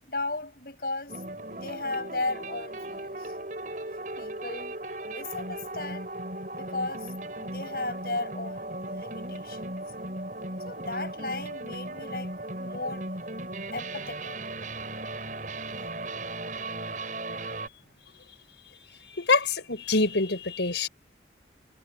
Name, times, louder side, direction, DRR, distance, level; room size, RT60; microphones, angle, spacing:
voice 1, 0.0-1.2 1.5-3.3 4.2-4.8 5.0-6.1 6.5-9.6 10.7-13.1 13.7-14.4, left 2 dB, 55° left, 7.1 m, -35 dB
sound 1, 1.1-17.7, right 2 dB, 45° right, 7.7 m, -37 dB
voice 2, 19.0-20.9, left 3 dB, 90° left, 5.4 m, -25 dB
head